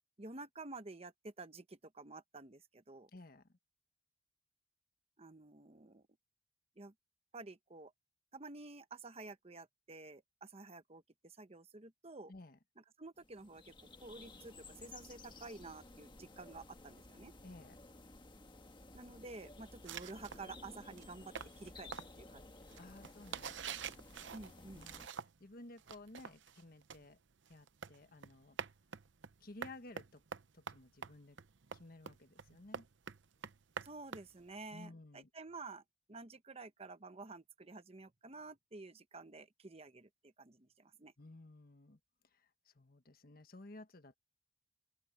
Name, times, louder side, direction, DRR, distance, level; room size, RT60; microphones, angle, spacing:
voice 1, 0.2-3.1 5.2-6.1 6.8-6.9 7.3-7.9 8.3-12.3 13.0-17.3 18.9-21.9 22.2-22.8 24.3-24.8 33.8-35.8 36.1-41.1, right 3 dB, 30° right, 1.0 m, -51 dB
voice 2, 3.1-3.6 12.3-12.6 17.4-17.8 22.8-24.1 24.7-25.1 25.4-27.2 27.5-28.6 29.4-30.2 30.5-31.4 31.7-32.8 34.7-35.3 41.2-42.0 42.3-44.2, left 2 dB, 50° left, 1.3 m, -55 dB
sound 1, 13.2-25.1, left 2 dB, 25° left, 1.5 m, -56 dB
sound 2, 19.9-25.5 25.8-34.8, right 6 dB, 75° right, 0.8 m, -48 dB
open air
head